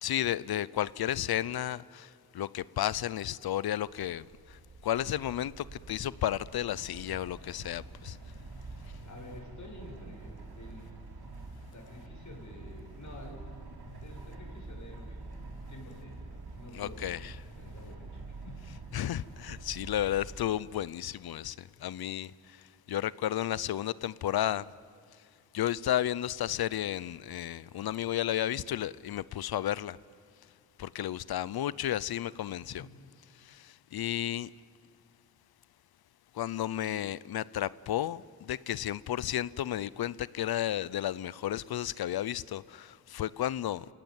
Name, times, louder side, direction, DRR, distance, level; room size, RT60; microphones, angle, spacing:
voice 1, 0.0-8.2 16.7-17.3 18.9-24.7 25.5-30.0 30.8-32.9 33.4-34.5 36.3-43.9, left 12 dB, 80° left, 0.6 m, -33 dB
sound 1, 3.8-20.4, right 3 dB, 85° right, 4.4 m, -46 dB
voice 2, 9.0-10.9 11.7-17.1 17.6-18.7 32.8-33.0, left 2 dB, 50° left, 7.3 m, -49 dB
28.0 x 17.5 x 9.3 m
cardioid pair, 65°, 37 cm